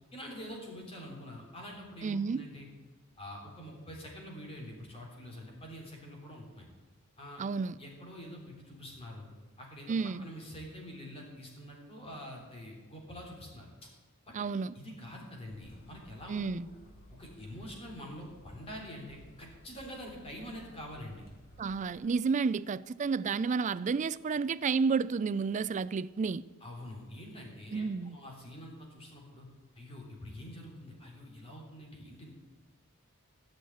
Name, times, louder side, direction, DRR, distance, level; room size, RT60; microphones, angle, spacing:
voice 1, 0.1-2.7 3.2-6.7 7.2-7.4 7.8-9.3 9.6-13.9 14.4-14.5 14.8-16.7 17.2-21.2 26.6-29.5 29.8-32.3, equal, 30° left, 3.4 m, -46 dB
voice 2, 2.0-2.4 7.4-7.8 9.9-10.3 14.3-14.8 16.3-16.7 21.6-26.4 27.7-28.2, right 5 dB, 35° right, 0.3 m, -31 dB
sound 1, 15.5-22.1, equal, 45° left, 2.2 m, -57 dB
15.0 x 6.4 x 9.4 m
head